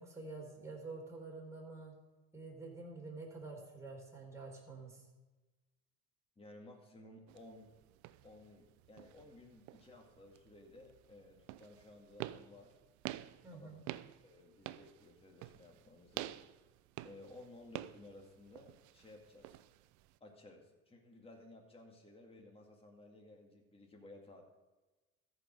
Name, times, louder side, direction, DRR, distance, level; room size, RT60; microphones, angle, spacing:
voice 1, 0.0-2.0 2.3-5.0 13.4-13.8, right 3 dB, 10° right, -2 dB, 4.0 m, -48 dB
voice 2, 6.4-7.7 8.2-12.7 13.5-14.0 14.2-16.4 17.0-19.6 20.2-24.4, left 2 dB, 20° left, 1 dB, 2.2 m, -57 dB
sound 1, 7.3-20.2, right 16 dB, 70° right, 0.6 m, -49 dB
14.0 x 5.4 x 7.6 m, 1.2 s
supercardioid pair, 90°, 31 cm